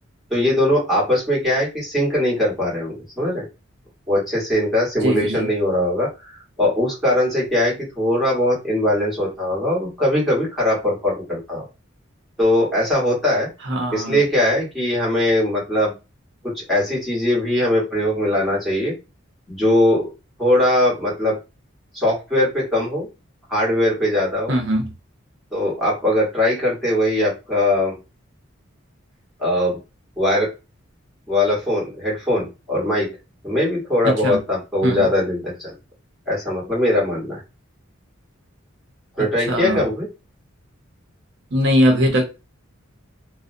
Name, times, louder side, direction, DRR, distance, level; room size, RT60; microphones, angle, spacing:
voice 1, 0.3-3.4 4.1-11.7 12.4-13.5 13.9-15.9 16.4-18.9 19.5-20.1 20.4-21.4 21.9-23.1 23.5-24.5 25.5-27.9 29.4-29.8 30.2-30.5 31.3-33.1 33.4-35.7 36.3-37.4 39.2-40.1, left 1 dB, ahead, 1.3 m, -20 dB
voice 2, 5.0-5.5 13.6-14.2 24.5-24.9 34.0-34.4 34.8-35.1 39.5-39.8 41.5-42.3, equal, 60° right, 0.6 m, -20 dB
2.6 x 2.1 x 2.5 m
head